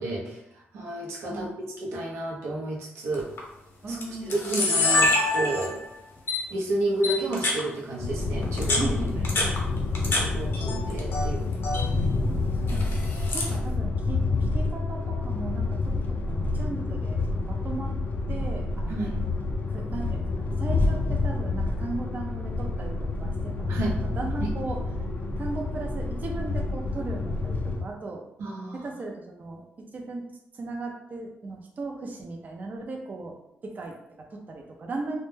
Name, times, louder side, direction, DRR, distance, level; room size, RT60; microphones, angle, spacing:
voice 1, 0.0-3.3 3.9-5.8 6.5-8.9 9.4-9.5 9.9-11.5 18.9-19.2 23.7-24.0 24.4-24.5 28.4-28.9, right 1 dB, 85° right, -2 dB, 0.6 m, -31 dB
Camera, 3.1-3.4 4.0-4.1 4.3-5.9 6.3-6.4 7.0-7.6 8.4-10.2 10.5-11.2 11.5-11.9 12.7-13.5, left 2 dB, 65° left, 0.7 m, -25 dB
voice 2, 3.8-4.5 8.8-9.6 12.5-16.0 16.2-17.9 18.3-19.2 19.7-24.8 25.4-28.2 28.7-29.6 29.9-30.2 30.5-33.4 33.6-35.2, right 3 dB, 40° right, 1 dB, 0.4 m, -37 dB
sound 1, 8.0-27.8, left 3 dB, 40° left, 0.4 m, -28 dB
2.1 x 2.1 x 3.1 m, 0.82 s
cardioid pair, 85°, 4 cm